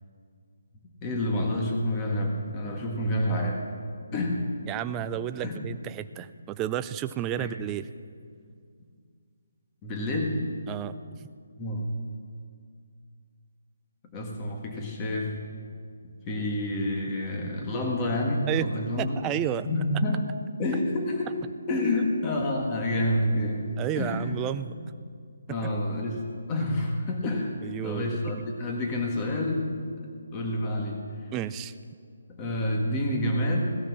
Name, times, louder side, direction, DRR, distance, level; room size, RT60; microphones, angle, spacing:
voice 1, 1.0-3.6 4.1-4.5 5.4-5.5 7.4-7.5 9.8-10.4 11.6-12.0 14.1-15.4 16.3-19.2 19.6-20.3 20.6-21.4 21.7-24.3 24.7-24.8 25.5-29.7 30.3-31.1 32.3-33.6, left 1 dB, 15° left, 0 dB, 1.8 m, -28 dB
voice 2, 4.7-7.9 10.7-11.3 18.5-18.7 19.0-19.7 23.8-24.7 27.6-28.0 31.3-31.7, right 11 dB, 15° right, 11 dB, 0.4 m, -31 dB
17.0 x 13.0 x 6.2 m, 2.2 s
hypercardioid pair, 170°, 0 cm